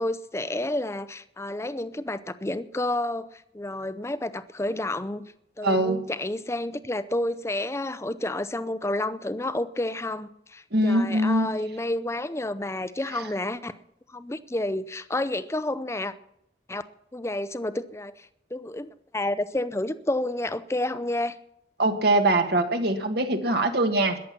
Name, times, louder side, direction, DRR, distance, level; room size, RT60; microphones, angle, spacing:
voice 1, 0.0-3.3 3.5-5.3 5.6-13.7 14.1-16.1 16.7-16.8 17.1-18.3 18.5-21.3, left 1 dB, 15° left, 0.6 m, -30 dB
voice 2, 5.6-6.0 10.7-11.5 13.1-13.2 21.8-24.2, right 1 dB, 60° right, 1.6 m, -23 dB
21.0 x 7.6 x 5.8 m
head